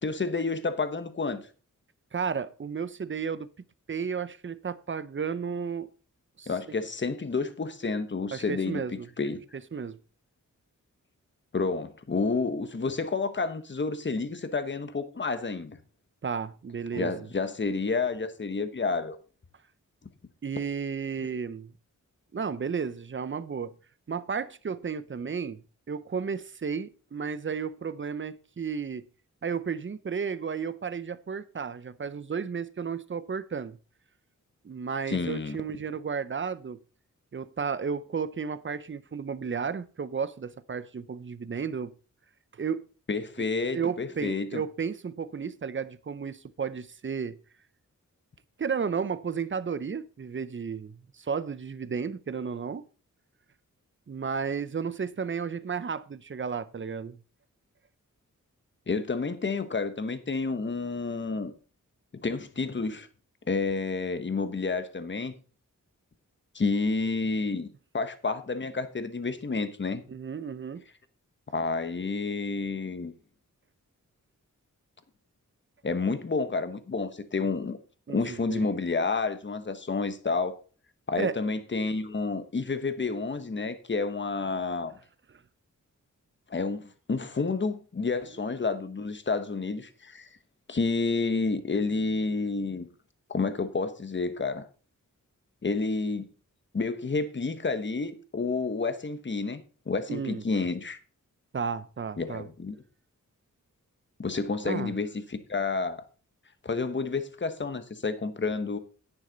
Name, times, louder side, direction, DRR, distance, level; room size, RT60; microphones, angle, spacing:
voice 1, 0.0-1.4 6.5-9.4 11.5-15.8 16.9-19.2 35.1-35.6 43.1-44.6 58.9-61.5 62.2-63.1 63.5-65.3 66.5-67.7 67.9-70.0 71.5-73.1 75.8-77.8 78.1-80.6 81.1-85.0 86.5-90.3 90.7-92.9 93.3-94.6 95.6-96.3 96.7-101.0 102.2-102.8 104.2-106.0 106.6-108.8, left 4 dB, 35° left, 1.1 m, -30 dB
voice 2, 2.1-3.5 3.9-5.9 6.4-6.8 8.3-9.1 9.7-10.0 16.2-17.3 20.4-21.7 22.3-23.7 24.1-25.6 25.9-29.0 29.4-33.8 34.6-36.8 37.3-41.9 42.5-42.9 43.4-43.5 43.7-47.4 48.6-52.8 54.1-57.2 70.1-70.8 78.1-78.6 81.2-81.4 100.1-100.4 101.5-102.5 104.6-104.9, right 6 dB, 40° right, 0.7 m, -33 dB
9.9 x 9.8 x 4.0 m
wide cardioid pair, 105°, 32 cm